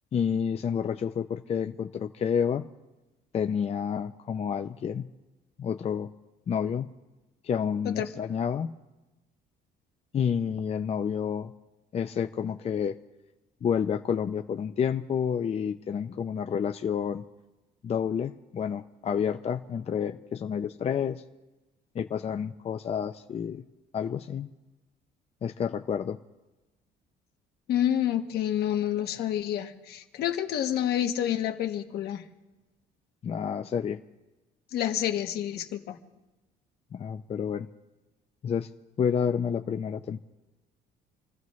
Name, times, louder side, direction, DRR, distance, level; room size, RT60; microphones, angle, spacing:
voice 1, 0.1-2.7 3.3-5.1 5.6-6.1 6.5-6.9 7.4-8.7 10.1-11.5 11.9-13.0 13.6-17.2 17.8-21.2 21.9-23.6 23.9-24.5 25.4-26.2 33.2-34.0 36.9-37.7 38.4-38.7 39.0-40.2, left 7 dB, 35° left, 7 dB, 0.6 m, -29 dB
voice 2, 27.7-32.2 34.7-36.0, left 11 dB, 70° left, 5 dB, 1.4 m, -28 dB
28.0 x 14.5 x 3.2 m, 1.1 s
cardioid pair, 110°, 17 cm